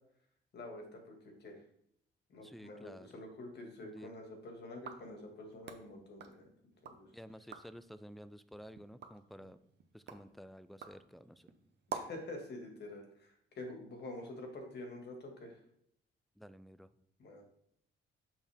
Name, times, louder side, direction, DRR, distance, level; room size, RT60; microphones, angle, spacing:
voice 1, 0.5-1.6 2.3-6.5 6.8-7.1 11.9-15.6 17.2-17.4, left 2 dB, 55° left, 3 dB, 2.0 m, -47 dB
voice 2, 2.4-3.2 3.8-4.1 7.1-9.6 9.9-11.5 16.4-16.9, equal, ahead, 14 dB, 0.4 m, -52 dB
sound 1, 4.7-7.0 7.4-7.8 8.3-12.3, right 6 dB, 60° right, 0.9 m, -49 dB
6.4 x 5.4 x 3.5 m, 0.72 s
cardioid pair, 90°, 20 cm